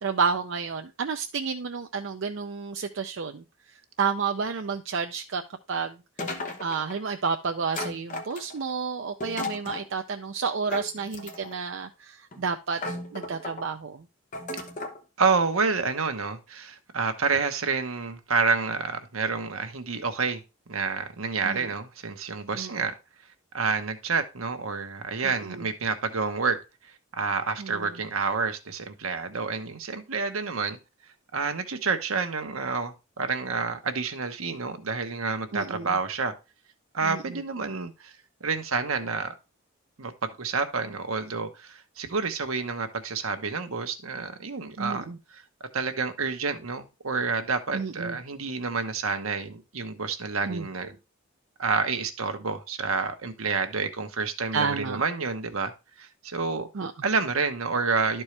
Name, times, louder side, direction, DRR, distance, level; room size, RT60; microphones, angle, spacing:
voice 1, 0.0-3.4 4.0-5.4 5.7-6.0 6.6-12.8 13.1-14.0 21.4-21.7 22.5-22.7 25.2-25.6 27.6-27.9 35.5-35.9 37.0-37.2 44.8-45.2 47.7-48.2 50.4-50.6 54.5-55.0 56.7-56.9, right 5 dB, 60° right, 5 dB, 0.5 m, -30 dB
sound 1, 6.2-7.0 7.7-8.7 9.2-9.9 10.7-11.6 12.3-12.4 12.8-13.7 14.3-15.0, left 2 dB, 35° left, 1.1 m, -35 dB
voice 2, 15.2-20.4 20.7-22.9 23.5-26.6 27.2-30.8 31.3-36.3 36.9-38.1 38.4-39.3 40.0-45.4 45.7-51.0 51.6-55.7 56.0-56.7 57.0-58.2, right 4 dB, 80° right, 7 dB, 1.1 m, -29 dB
11.5 x 4.5 x 3.3 m, 0.28 s
head